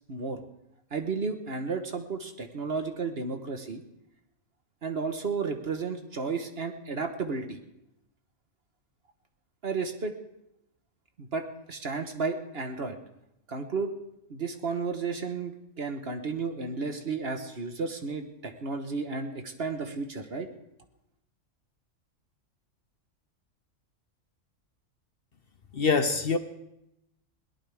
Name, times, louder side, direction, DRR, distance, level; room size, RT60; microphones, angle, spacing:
voice 1, 0.1-0.4 0.9-3.8 4.8-7.6 9.6-10.1 11.2-13.0 13.5-13.9 14.3-20.5, right 4 dB, 50° right, 1.5 m, -33 dB
voice 2, 25.7-26.4, left 4 dB, 50° left, 1.0 m, -24 dB
21.5 x 18.5 x 3.6 m
omnidirectional pair, 1.4 m